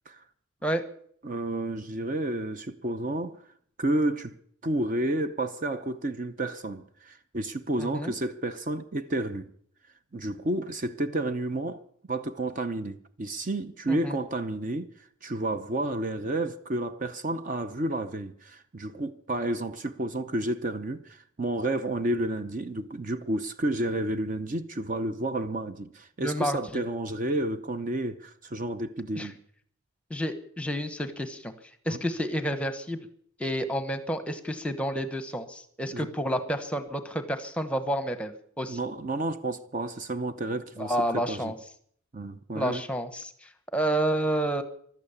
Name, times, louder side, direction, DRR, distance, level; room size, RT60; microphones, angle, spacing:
voice 1, 1.2-3.4 3.8-4.3 4.6-9.5 10.1-11.8 12.1-29.4 31.9-32.0 35.9-36.1 38.7-41.0 41.3-41.5 42.1-42.8, right 1 dB, 35° right, 0.7 m, -31 dB
voice 2, 7.8-8.1 13.9-14.2 26.2-26.8 29.1-29.3 30.1-31.5 31.8-33.0 33.4-38.8 40.8-41.5 42.5-44.6, right 1 dB, 5° left, 1.0 m, -30 dB
15.5 x 12.0 x 7.1 m
head